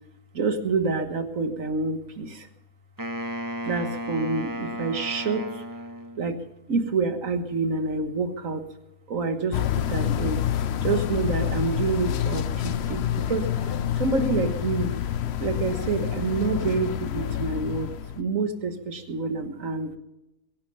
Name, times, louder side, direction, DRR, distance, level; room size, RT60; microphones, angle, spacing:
voice 1, 0.3-2.5 3.6-5.6 6.2-6.4 6.7-8.6 9.1-10.4 10.8-14.9 15.4-20.0, right 4 dB, 55° right, 8 dB, 1.7 m, -27 dB
Wind instrument woodwind instrument, 3.0-6.5, equal, 15° right, 0.7 m, -34 dB
sound 1, 9.5-18.2, left 10 dB, 65° left, 0.6 m, -28 dB
21.5 x 11.0 x 5.5 m, 0.91 s
omnidirectional pair, 1.8 m